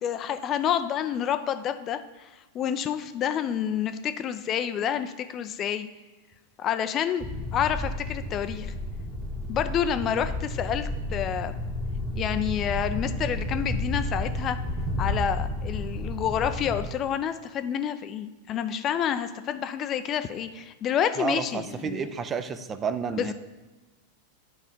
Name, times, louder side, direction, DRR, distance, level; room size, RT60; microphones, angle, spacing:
voice 1, 0.0-2.3 2.5-5.9 6.6-7.2 7.5-8.7 9.5-11.5 12.1-14.6 15.0-22.0 23.2-23.3, left 9 dB, 30° left, 10 dB, 0.4 m, -28 dB
sound 1, 7.2-16.8, left 1 dB, 10° left, 1.0 m, -31 dB
voice 2, 21.2-23.3, right 6 dB, 25° right, 12 dB, 0.6 m, -30 dB
9.5 x 5.0 x 5.3 m, 1.1 s
figure-of-eight pair, 90°, 0 cm